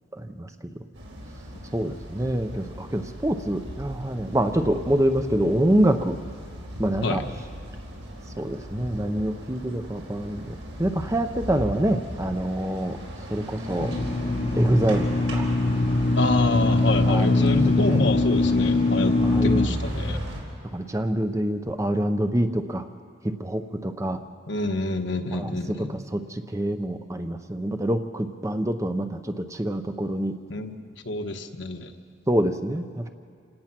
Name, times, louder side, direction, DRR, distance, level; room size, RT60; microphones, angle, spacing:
voice 1, 0.1-0.5 0.8-0.9 1.7-6.2 6.8-7.3 8.4-13.0 13.3-13.9 14.5-15.5 17.1-18.0 19.2-19.8 20.7-22.9 23.2-24.2 25.3-30.4 32.3-33.1, right 1 dB, 15° right, 8 dB, 0.6 m, -26 dB
sound 1, 0.9-20.4, equal, 80° right, 4.1 m, -36 dB
sound 2, 13.8-19.7, left 2 dB, 25° left, 0.5 m, -22 dB
voice 2, 16.2-19.1 19.4-20.2 24.5-26.0 30.5-30.8 31.0-31.9, left 2 dB, 65° left, 5 dB, 1.2 m, -27 dB
27.5 x 17.5 x 6.1 m, 2.2 s
head